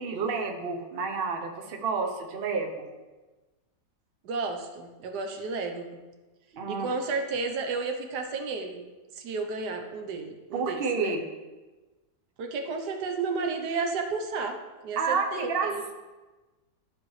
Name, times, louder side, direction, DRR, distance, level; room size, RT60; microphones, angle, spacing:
voice 1, 0.0-2.9 6.5-6.9 10.5-11.2 15.0-15.9, right 4 dB, 45° right, 3 dB, 0.9 m, -30 dB
voice 2, 4.2-5.9 6.7-8.8 9.2-11.2 12.4-14.6 14.8-15.8, right 4 dB, 90° right, 4 dB, 1.4 m, -32 dB
13.0 x 4.8 x 3.2 m, 1.2 s
omnidirectional pair, 1.7 m